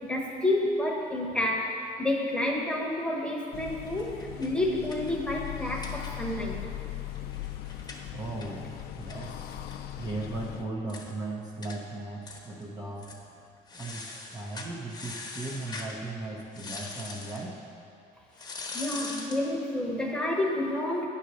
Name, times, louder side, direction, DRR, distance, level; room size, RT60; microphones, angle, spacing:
voice 1, 0.1-6.7 18.7-21.1, left 1 dB, 5° left, -1 dB, 1.2 m, -29 dB
sound 1, 3.5-10.7, left 12 dB, 70° left, 0.4 m, -39 dB
sound 2, 3.9-6.5 6.8-6.9 7.2-10.3 10.6-10.7 10.9-11.1 11.6-11.8 12.2-12.7 13.0-13.2 13.7-16.0 16.5-17.5 18.3-19.5, left 3 dB, 25° left, 1.1 m, -42 dB
voice 2, 8.1-9.6 10.0-13.1 13.7-17.6, right 2 dB, 25° right, -3 dB, 0.8 m, -37 dB
9.1 x 4.2 x 6.3 m, 2.6 s
cardioid pair, 110°, 17 cm